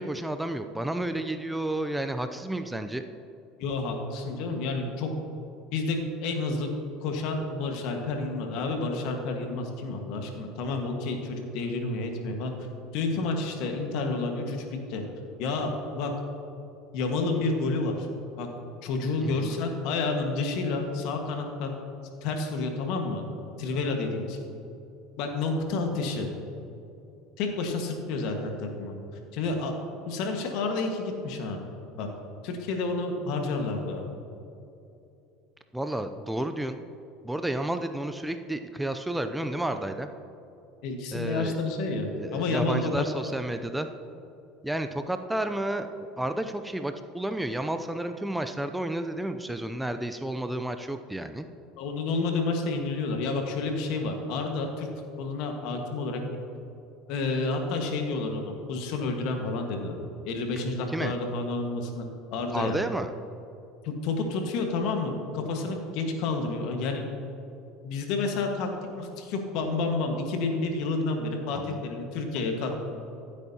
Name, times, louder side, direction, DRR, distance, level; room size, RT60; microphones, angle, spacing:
voice 1, 0.0-3.0 19.2-19.6 35.7-36.8 37.2-40.1 41.1-41.6 42.1-43.9 44.6-51.5 60.6-61.2 62.5-63.1 71.5-71.8, right 1 dB, 5° right, 8 dB, 0.5 m, -31 dB
voice 2, 3.6-5.1 5.7-6.7 7.0-12.5 12.9-15.0 15.4-16.1 16.9-18.1 18.4-18.5 18.8-21.7 22.2-23.2 23.6-24.4 25.2-26.3 27.4-28.9 29.3-29.8 30.0-31.6 32.0-32.1 32.4-34.0 40.8-43.0 51.8-54.9 55.2-56.2 57.1-60.0 60.2-62.1 62.3-62.7 63.8-67.0 67.8-72.7, left 3 dB, 65° left, 3 dB, 1.5 m, -30 dB
14.5 x 8.3 x 2.9 m, 2.7 s
hypercardioid pair, 85°, 0 cm